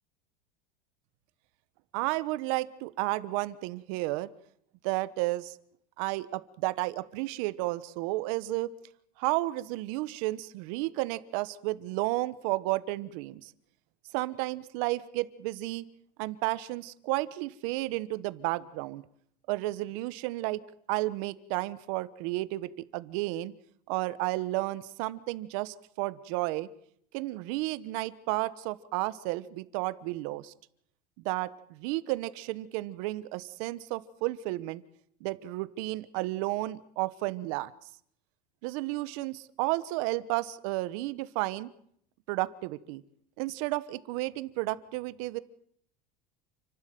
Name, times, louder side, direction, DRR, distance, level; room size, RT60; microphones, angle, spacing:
voice 1, 1.9-4.3 4.8-5.6 6.0-8.7 9.2-13.5 14.1-15.8 16.2-19.0 19.5-20.6 20.9-23.5 23.9-26.7 27.1-30.5 31.2-34.8 35.2-37.7 38.6-41.7 42.3-43.0 43.4-45.4, right 19 dB, 60° right, 16 dB, 1.2 m, -32 dB
29.0 x 12.0 x 9.3 m, 0.67 s
supercardioid pair, 155°, 20 cm